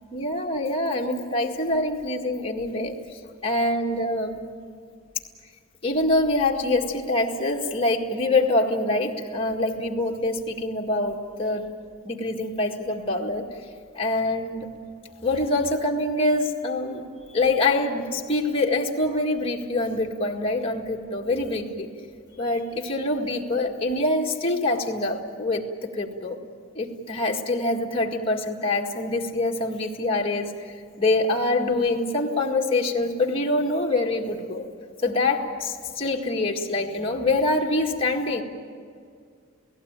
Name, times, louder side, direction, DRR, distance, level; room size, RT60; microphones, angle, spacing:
voice 1, 0.0-3.0 3.4-4.4 5.8-11.7 12.0-13.5 13.9-14.7 15.2-17.1 17.3-21.9 22.4-26.4 26.8-34.7 35.0-38.4, left 2 dB, 30° left, 0 dB, 1.9 m, -25 dB
29.0 x 17.5 x 8.9 m, 2.2 s
head